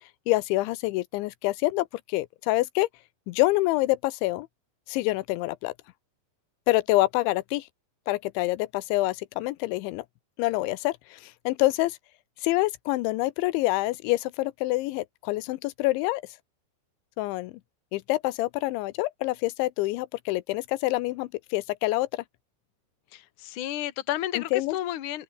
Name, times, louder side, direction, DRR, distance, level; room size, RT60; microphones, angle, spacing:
voice 1, 0.3-2.9 3.3-4.5 4.9-5.7 6.7-7.7 8.1-10.1 10.4-12.0 12.4-16.2 17.2-17.5 17.9-22.2 24.3-24.8, left 19 dB, 85° left, 3.1 m, -26 dB
voice 2, 23.1-25.2, left 13 dB, 55° left, 2.6 m, -32 dB
open air
omnidirectional pair, 5.3 m